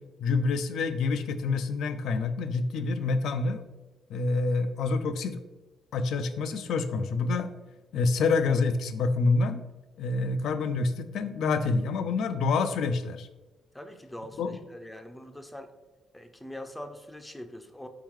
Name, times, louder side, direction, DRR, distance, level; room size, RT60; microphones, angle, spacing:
voice 1, 0.2-3.6 4.1-5.4 5.9-7.5 7.9-9.6 10.0-13.3 14.4-14.5, left 4 dB, 75° left, 10 dB, 0.3 m, -27 dB
voice 2, 13.7-15.7 16.1-17.9, left 1 dB, 10° left, 7 dB, 0.4 m, -43 dB
4.5 x 3.7 x 3.0 m, 1.1 s
cardioid pair, 90°, 0 cm